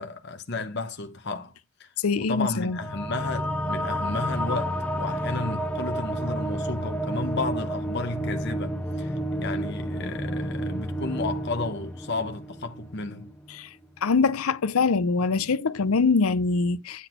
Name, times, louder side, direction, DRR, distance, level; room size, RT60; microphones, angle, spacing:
voice 1, 0.0-1.5 1.8-1.9 2.2-13.3, left 3 dB, 55° left, 0.9 m, -33 dB
voice 2, 2.0-2.8 13.5-13.7 14.0-17.1, left 4 dB, 90° left, 0.6 m, -23 dB
sound 1, 2.7-13.6, equal, 5° left, 1.0 m, -30 dB
9.7 x 4.0 x 4.4 m
head